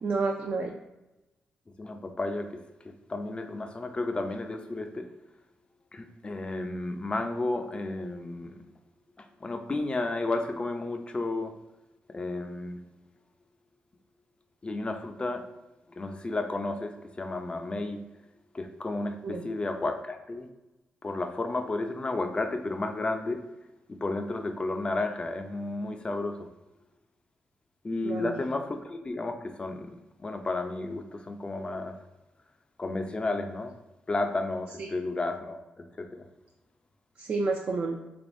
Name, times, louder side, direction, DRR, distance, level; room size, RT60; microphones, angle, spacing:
voice 1, 0.0-0.8 19.2-19.4 28.0-28.4 34.8-34.9 37.2-38.0, right 3 dB, 50° right, 2 dB, 0.4 m, -30 dB
voice 2, 1.8-2.5 3.1-5.1 5.9-8.5 9.4-11.5 12.1-12.8 14.6-15.4 16.0-16.9 17.2-18.0 18.5-20.5 21.0-23.4 23.9-26.5 27.8-29.9 30.2-31.9 32.8-33.7 34.1-35.6 36.0-36.1, left 2 dB, 30° left, 6 dB, 0.4 m, -32 dB
3.4 x 3.3 x 2.6 m, 1.0 s
cardioid pair, 75°, 4 cm